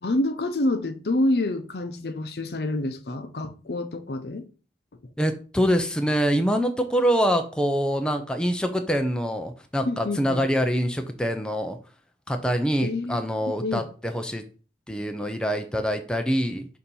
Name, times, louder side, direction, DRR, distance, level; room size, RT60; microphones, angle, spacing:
voice 1, 0.0-4.5 9.8-10.4 12.8-13.2 13.6-13.9, left 1 dB, 65° left, 0.7 m, -27 dB
voice 2, 5.2-11.8 12.3-14.4 14.9-16.7, equal, 5° left, 0.5 m, -25 dB
6.9 x 2.7 x 5.4 m
head